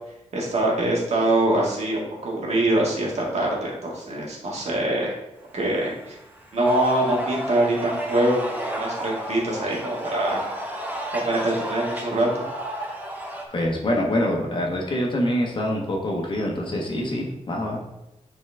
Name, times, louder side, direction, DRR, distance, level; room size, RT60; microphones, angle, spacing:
voice 1, 0.3-5.2 5.5-6.2 6.5-10.5 11.1-12.4, right 1 dB, 65° right, -3 dB, 2.0 m, -24 dB
sound 1, 5.7-13.4, equal, 15° right, 1.0 m, -32 dB
voice 2, 13.5-17.8, left 1 dB, 45° left, 0 dB, 1.3 m, -25 dB
9.6 x 4.2 x 3.5 m, 0.90 s
wide cardioid pair, 175°, 12 cm